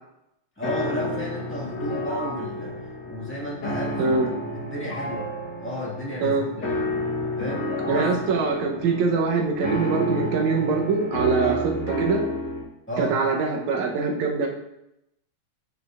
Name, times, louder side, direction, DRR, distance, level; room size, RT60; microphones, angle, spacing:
sound 1, 0.6-12.6, left 1 dB, 50° left, 1.3 m, -30 dB
voice 1, 0.6-2.7 3.1-4.1 4.5-5.3 5.6-6.8 7.4-8.1 11.4-11.6 12.9-13.1, equal, 5° left, -7 dB, 1.0 m, -32 dB
voice 2, 4.0-4.3 6.2-6.5 7.9-11.7 12.0-12.3 13.0-14.5, right 4 dB, 75° right, 1 dB, 2.2 m, -23 dB
9.4 x 5.0 x 2.5 m, 0.84 s
omnidirectional pair, 3.4 m